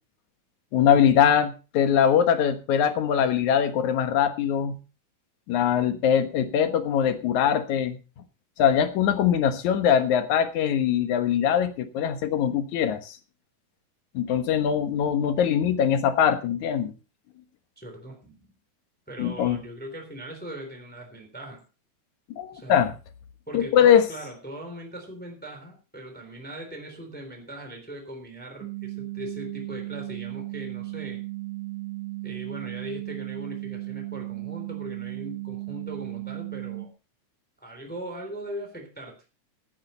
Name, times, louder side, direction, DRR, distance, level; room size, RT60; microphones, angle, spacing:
voice 1, 0.7-4.8 5.5-8.0 8.6-13.2 14.1-16.9 19.2-19.6 22.4-22.9 23.5-24.1, left 8 dB, 70° left, 9 dB, 2.6 m, -22 dB
voice 2, 17.8-18.5 19.1-21.6 22.5-22.8 23.5-31.2 32.2-36.9 37.6-39.2, right 1 dB, 5° left, 3 dB, 3.1 m, -40 dB
sound 1, 28.6-36.9, right 20 dB, 65° right, 3.5 m, -35 dB
17.0 x 8.8 x 4.2 m, 0.33 s
omnidirectional pair, 3.6 m